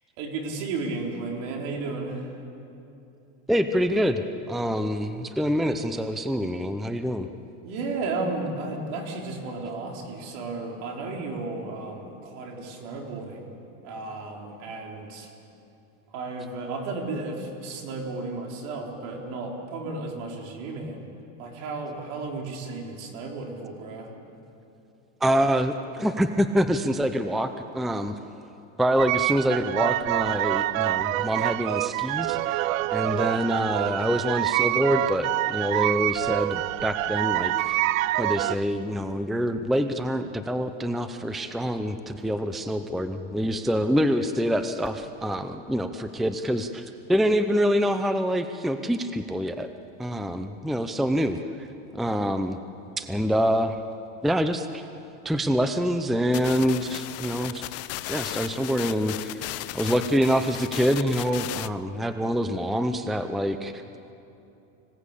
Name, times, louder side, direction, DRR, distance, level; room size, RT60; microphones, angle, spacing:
voice 1, 0.2-2.3 7.6-13.5 13.8-15.3 16.1-21.1 21.4-24.1, right 3 dB, 60° right, 1 dB, 4.4 m, -33 dB
voice 2, 3.5-7.3 25.2-28.1 28.8-37.9 38.2-49.7 50.0-51.7 51.9-52.6 53.0-53.8 54.2-54.9 55.2-57.7 58.1-59.4 59.7-63.8, equal, ahead, 9 dB, 0.6 m, -26 dB
sound 1, 29.0-38.5, right 16 dB, 90° right, 0.7 m, -26 dB
sound 2, 56.3-61.7, left 16 dB, 40° left, 0.6 m, -36 dB
25.0 x 17.5 x 8.4 m, 2.8 s
supercardioid pair, 135°, 38 cm